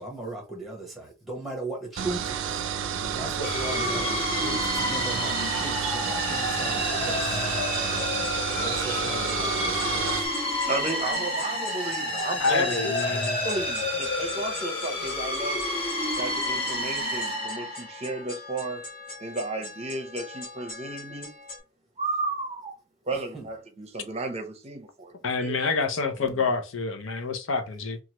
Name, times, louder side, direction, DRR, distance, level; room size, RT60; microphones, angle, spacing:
voice 1, 0.0-2.4 3.0-7.2 8.5-10.1 23.3-23.4 26.3-26.4, right 2 dB, ahead, 1.1 m, -37 dB
sound 1, 2.0-10.3, right 8 dB, 80° right, 0.4 m, -30 dB
sound 2, 3.4-18.2, left 1 dB, 30° left, 1.0 m, -29 dB
sound 3, 7.2-21.6, left 3 dB, 50° left, 1.3 m, -43 dB
voice 2, 10.7-15.7 16.2-18.8 19.2-21.3 22.0-22.7 23.0-25.2 25.4-25.6, right 2 dB, 35° right, 0.6 m, -33 dB
voice 3, 12.4-13.4 25.2-28.0, left 4 dB, 90° left, 0.6 m, -27 dB
2.9 x 2.4 x 3.0 m
head